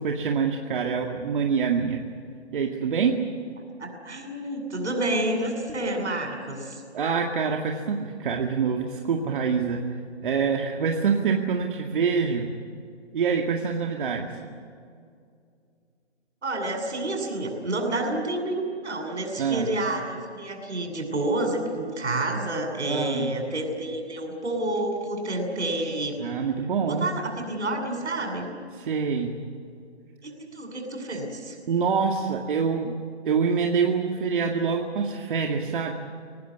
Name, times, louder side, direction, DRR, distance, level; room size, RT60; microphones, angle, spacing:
voice 1, 0.0-2.0 2.5-3.2 6.9-9.8 10.2-12.5 13.1-14.3 19.4-19.7 22.9-23.3 26.2-27.1 28.8-29.4 31.7-32.9 33.2-35.9, right 6 dB, 50° right, 2 dB, 2.2 m, -25 dB
voice 2, 3.8-6.8 14.0-14.4 16.4-26.2 26.9-28.5 30.2-31.6, right 1 dB, 75° right, 4 dB, 7.5 m, -29 dB
25.5 x 18.5 x 9.8 m, 2.3 s
hypercardioid pair, 150°, 34 cm